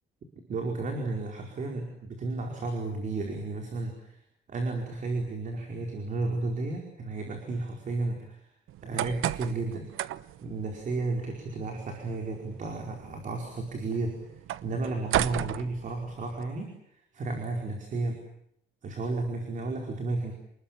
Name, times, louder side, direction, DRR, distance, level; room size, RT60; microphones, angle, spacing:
voice 1, 0.5-4.2 4.5-8.5 8.8-9.9 10.4-14.1 14.6-16.7 17.1-18.2 18.8-20.3, right 3 dB, 40° right, 2 dB, 4.9 m, -33 dB
sound 1, 8.7-16.4, right 13 dB, 85° right, 1.0 m, -36 dB
28.5 x 21.0 x 9.0 m, 0.74 s
cardioid pair, 175°, 20 cm